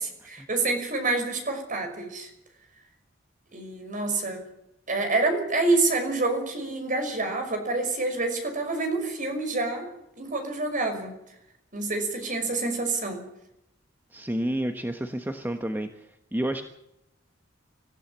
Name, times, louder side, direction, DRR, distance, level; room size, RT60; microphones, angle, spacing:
voice 1, 0.0-2.3 3.5-4.4 4.9-9.9 10.2-11.1 11.7-13.2, right 3 dB, 45° right, 5 dB, 5.7 m, -27 dB
voice 2, 14.1-16.6, right 1 dB, 10° right, 6 dB, 1.2 m, -30 dB
25.0 x 15.0 x 7.5 m, 0.82 s
head